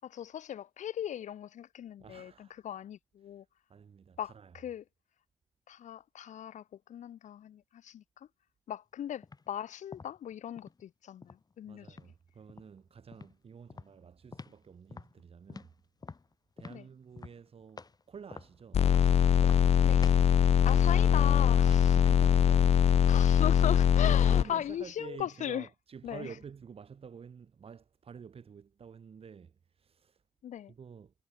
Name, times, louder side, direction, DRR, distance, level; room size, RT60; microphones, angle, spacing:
voice 1, 0.0-3.5 4.2-4.8 5.7-8.3 8.7-12.1 16.7-16.9 19.8-20.0 20.6-21.9 23.1-25.7 26.0-26.3 30.4-30.7, left 10 dB, 80° left, 5.3 m, -38 dB
voice 2, 2.0-2.6 3.7-4.5 11.6-15.7 16.6-18.9 20.7-22.8 24.0-30.2 30.7-31.1, right 6 dB, 50° right, 7.8 m, -49 dB
sound 1, 9.2-9.5 9.9-10.8 11.2-12.1 12.5-12.8 13.1-13.3 13.7-14.6 14.9-18.0 18.3-19.1 19.4-19.7 20.0-20.3 20.7-22.4, left 4 dB, 30° left, 5.8 m, -49 dB
sound 2, 18.7-24.4, left 9 dB, 60° left, 0.7 m, -23 dB
cardioid pair, 100°, 12 cm